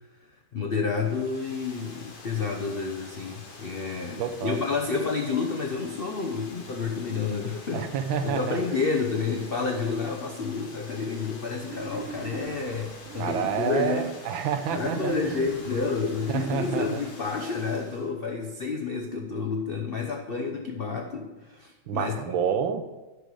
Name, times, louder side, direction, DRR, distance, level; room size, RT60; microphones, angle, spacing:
voice 1, 0.5-7.9 8.2-14.1 14.7-22.3, left 4 dB, 75° left, 2 dB, 0.5 m, -30 dB
Water, 0.9-18.1, left 3 dB, 35° left, 1.1 m, -46 dB
voice 2, 4.2-4.6 7.7-8.8 13.2-15.5 16.3-17.0 21.9-22.8, right 7 dB, 85° right, 8 dB, 1.5 m, -29 dB
Wild animals, 11.6-14.1 14.6-17.1, right 4 dB, 55° right, 1.0 m, -41 dB
10.0 x 6.5 x 4.7 m, 1.1 s
omnidirectional pair, 2.1 m